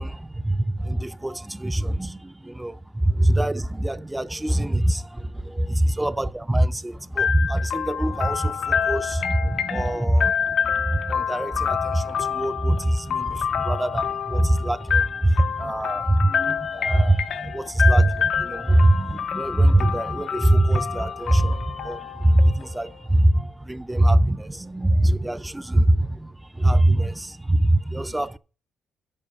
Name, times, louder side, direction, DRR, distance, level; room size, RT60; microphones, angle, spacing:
voice 1, 0.0-28.4, right 1 dB, 10° right, 0.4 m, -22 dB
sound 1, 7.2-23.0, left 7 dB, 65° left, 0.5 m, -28 dB
8.8 x 6.9 x 5.5 m
cardioid pair, 90°, 0 cm